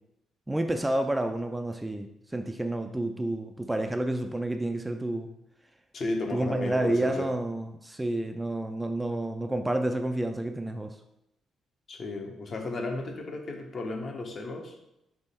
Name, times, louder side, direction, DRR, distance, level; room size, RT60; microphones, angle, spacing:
voice 1, 0.5-5.3 6.3-10.9, right 1 dB, 10° right, 6 dB, 0.3 m, -29 dB
voice 2, 5.9-7.3 11.9-14.7, left 2 dB, 45° left, 3 dB, 0.8 m, -34 dB
3.6 x 3.0 x 4.2 m, 0.85 s
cardioid pair, 90°, 0 cm